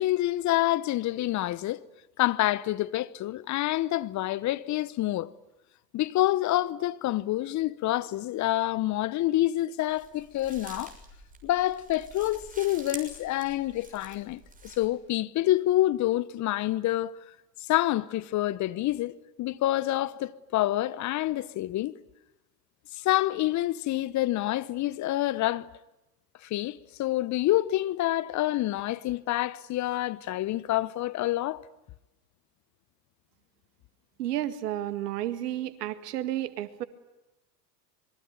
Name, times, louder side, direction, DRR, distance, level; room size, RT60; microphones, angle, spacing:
voice 1, 0.0-1.8 2.2-5.3 5.9-10.9 11.4-17.1 17.6-21.9 22.9-25.7 26.4-31.6, left 15 dB, 35° left, 0.9 m, -27 dB
sound 1, 9.9-14.9, right 3 dB, 15° right, 6.5 m, -47 dB
voice 2, 34.2-36.8, right 13 dB, 70° right, 2.1 m, -32 dB
26.5 x 23.0 x 9.3 m
hypercardioid pair, 90°, 48 cm